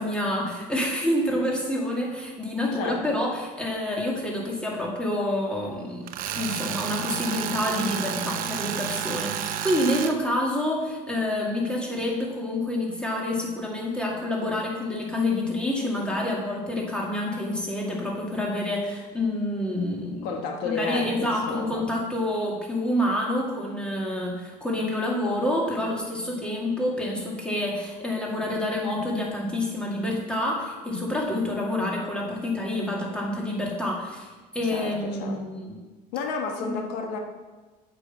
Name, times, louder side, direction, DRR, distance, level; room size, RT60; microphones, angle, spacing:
voice 1, 0.0-6.1 6.4-20.3 20.6-34.3 34.5-35.8 36.6-36.7, left 1 dB, 5° left, -3 dB, 2.2 m, -28 dB
voice 2, 2.7-3.1 20.2-21.9 34.7-35.4 36.1-37.2, left 4 dB, 85° left, 3 dB, 1.2 m, -31 dB
Tools, 6.1-10.1, right 9 dB, 55° right, 0.7 m, -31 dB
8.2 x 5.5 x 7.0 m, 1.2 s
cardioid pair, 125°, 17 cm